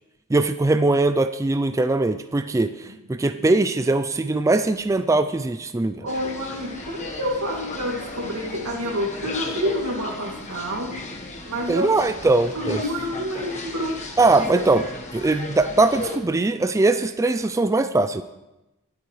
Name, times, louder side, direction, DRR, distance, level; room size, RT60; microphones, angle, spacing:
voice 1, 0.3-6.1 11.7-12.8 14.2-14.8 15.1-18.2, right 2 dB, 15° right, 10 dB, 0.3 m, -21 dB
voice 2, 2.9-3.5 6.0-11.0 11.4-12.2 12.5-14.0 14.5-14.6, equal, 90° right, 0 dB, 2.4 m, -29 dB
sound 1, 6.1-16.2, left 2 dB, 30° left, 1.2 m, -35 dB
22.5 x 8.5 x 3.1 m, 0.97 s
head